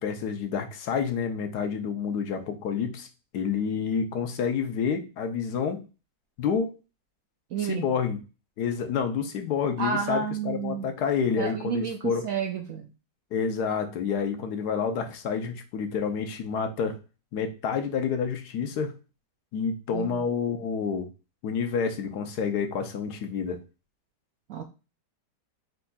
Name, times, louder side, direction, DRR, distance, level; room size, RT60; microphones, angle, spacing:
voice 1, 0.0-3.1 3.3-5.8 6.4-6.7 7.6-8.2 8.6-12.3 13.3-17.0 17.3-18.9 19.5-21.1 21.4-23.6, left 6 dB, 70° left, 6 dB, 1.2 m, -28 dB
voice 2, 7.5-7.8 9.8-10.9 11.4-12.9 19.9-20.2 24.5-24.6, right 6 dB, 70° right, 3 dB, 0.8 m, -30 dB
4.5 x 3.9 x 2.3 m, 0.30 s
omnidirectional pair, 1.9 m